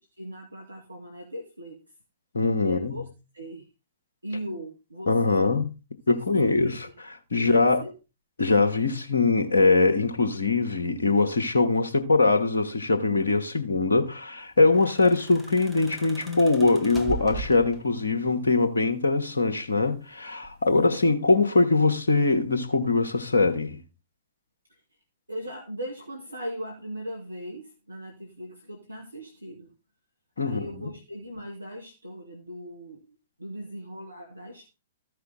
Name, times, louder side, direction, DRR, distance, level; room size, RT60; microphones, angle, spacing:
voice 1, 0.2-1.8 2.6-3.1 3.3-3.6 4.2-5.5 6.1-6.9 7.4-7.9 20.8-21.0 24.7-24.8 25.3-29.7 30.4-34.7, equal, 80° right, 1.6 m, -39 dB
voice 2, 2.3-3.0 5.1-5.7 6.1-6.8 7.3-7.8 8.4-23.8 30.4-30.7, left 3 dB, 65° left, 1.2 m, -22 dB
sound 1, 14.5-18.1 19.3-20.0 20.4-20.7, right 3 dB, 10° right, 1.3 m, -39 dB
14.0 x 5.8 x 3.8 m
figure-of-eight pair, 110°, 0 cm